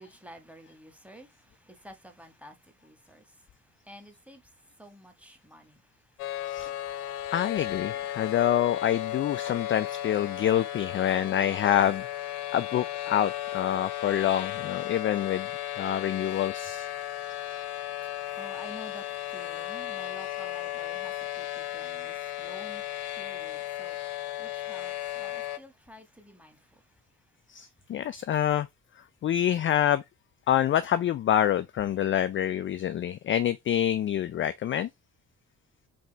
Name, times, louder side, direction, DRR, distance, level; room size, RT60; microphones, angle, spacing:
voice 1, 0.0-3.5 3.8-5.9 6.3-6.8 17.0-26.8, equal, 5° right, 1.4 m, -51 dB
sound 1, 6.2-25.6, left 13 dB, 80° left, 0.5 m, -35 dB
voice 2, 7.3-12.1 12.5-15.5 15.8-16.9 27.5-28.7 29.2-30.0 30.5-34.9, left 11 dB, 30° left, 0.4 m, -26 dB
5.1 x 2.7 x 3.4 m
figure-of-eight pair, 40°, 44 cm